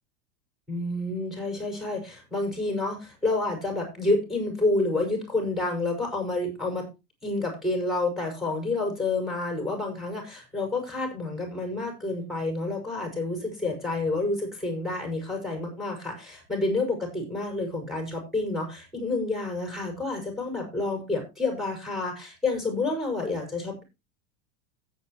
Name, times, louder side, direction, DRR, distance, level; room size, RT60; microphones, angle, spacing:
voice 1, 0.7-6.9 7.2-23.8, left 2 dB, ahead, 1 dB, 5.9 m, -29 dB
16.5 x 8.6 x 3.1 m, 0.26 s
supercardioid pair, 145°, 44 cm